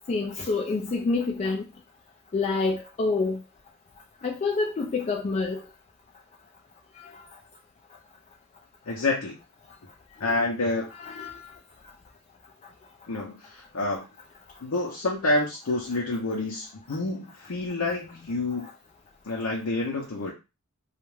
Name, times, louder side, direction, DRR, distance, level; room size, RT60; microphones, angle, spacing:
voice 1, 0.1-1.6 2.3-3.4 4.2-5.6 11.0-11.5, left 3 dB, 30° left, 0.3 m, -27 dB
voice 2, 8.9-9.4 10.2-10.9 13.1-14.1 14.6-18.7 19.2-20.3, left 2 dB, 75° left, 0.6 m, -28 dB
2.4 x 2.1 x 3.1 m
head